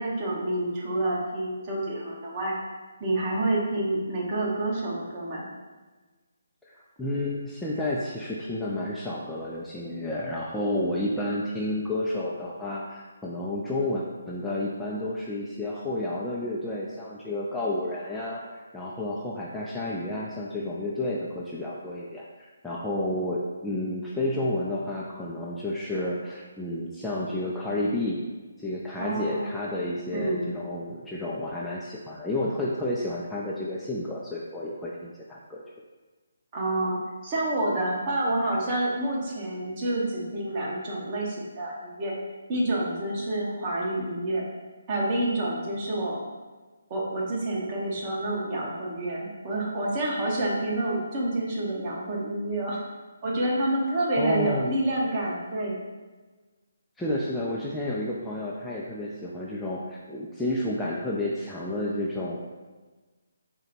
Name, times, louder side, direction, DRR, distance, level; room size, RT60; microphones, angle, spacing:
voice 1, 0.0-2.5 3.0-5.4 29.0-29.5 30.1-30.5 36.5-42.1 42.5-44.4 44.9-46.2 46.9-52.8 53.2-55.8, right 1 dB, 30° right, -4 dB, 0.9 m, -28 dB
voice 2, 6.7-28.2 28.6-35.6 54.2-54.7 57.0-62.4, left 1 dB, 5° left, -7 dB, 0.3 m, -31 dB
3.8 x 2.1 x 4.2 m, 1.3 s
figure-of-eight pair, 145°, 0 cm